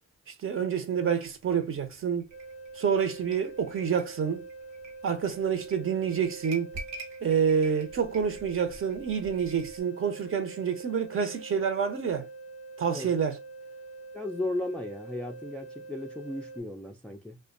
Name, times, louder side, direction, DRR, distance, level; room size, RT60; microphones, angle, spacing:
voice 1, 0.4-2.3 2.7-4.5 5.0-6.7 7.2-12.3 12.8-13.4, right 7 dB, 45° right, 0.7 m, -28 dB
sound 1, 1.2-9.8, right 2 dB, 65° right, 1.0 m, -47 dB
sound 2, 2.3-16.6, right 3 dB, 25° left, 0.7 m, -45 dB
voice 2, 14.1-17.4, left 1 dB, 5° left, 0.3 m, -35 dB
2.5 x 2.2 x 2.4 m
cardioid pair, 90°, 30 cm